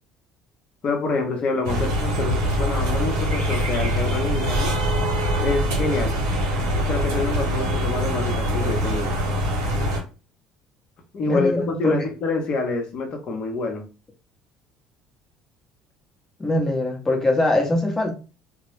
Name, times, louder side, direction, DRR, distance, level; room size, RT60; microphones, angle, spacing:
voice 1, 0.8-4.8 5.4-6.2 6.6-9.1 11.1-13.8, left 3 dB, 50° left, 0.8 m, -27 dB
sound 1, 1.6-10.0, equal, 85° right, 0.9 m, -23 dB
voice 2, 11.3-11.9 16.4-18.1, left 2 dB, 20° left, 0.9 m, -22 dB
2.2 x 2.0 x 3.2 m
hypercardioid pair, 70°, 2 cm